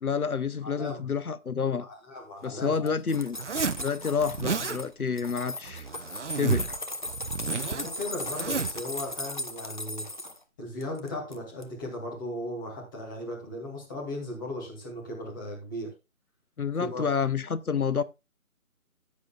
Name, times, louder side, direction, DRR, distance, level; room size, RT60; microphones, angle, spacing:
voice 1, 0.0-1.9 2.4-3.4 3.8-5.9 6.4-6.8 16.6-18.0, left 6 dB, 75° left, 0.9 m, -29 dB
voice 2, 0.6-1.0 1.8-2.9 7.6-10.0 10.6-15.9 16.8-17.0, left 1 dB, 15° left, 2.2 m, -37 dB
sound 1, 2.7-4.9 5.2-10.4 10.8-11.4 11.6-11.7, left 1 dB, 35° left, 0.7 m, -37 dB
Zipper (clothing), 3.3-3.8 4.2-4.8 5.6-6.8 7.1-8.8, right 5 dB, 55° right, 0.5 m, -31 dB
15.0 x 8.4 x 2.4 m
figure-of-eight pair, 155°, 44 cm